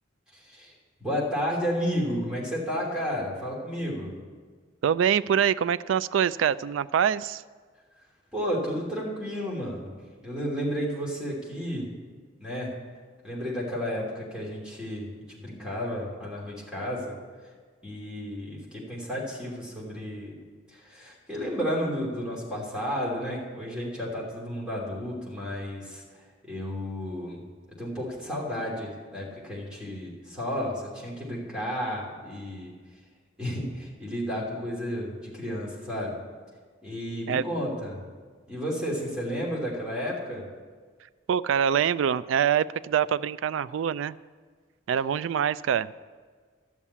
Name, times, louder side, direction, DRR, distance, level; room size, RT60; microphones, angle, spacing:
voice 1, 0.3-0.7 1.0-4.1 8.3-9.9 10.2-11.9 12.4-12.7 13.2-17.2 17.8-20.4 20.7-27.4 27.8-32.7 33.4-36.2 36.8-38.0 38.5-40.4, equal, 5° right, -5 dB, 2.9 m, -32 dB
voice 2, 4.8-7.4 37.3-37.4 41.3-44.1 44.9-45.9, right 8 dB, 80° right, 18 dB, 0.3 m, -25 dB
12.5 x 7.3 x 8.3 m, 1.5 s
head